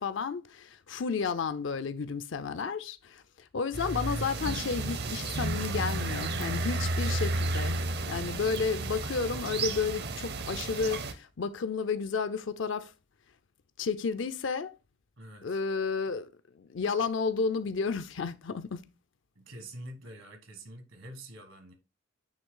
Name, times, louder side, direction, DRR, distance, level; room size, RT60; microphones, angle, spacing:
voice 1, 0.0-7.8 8.1-12.9 13.8-14.8 15.4-16.3 16.6-18.8, left 5 dB, 65° left, 0.5 m, -32 dB
sound 1, 3.7-11.1, right 2 dB, 50° right, 0.7 m, -32 dB
voice 2, 15.2-15.6 19.3-21.7, right 1 dB, 70° right, 1.4 m, -46 dB
8.7 x 3.1 x 3.7 m
head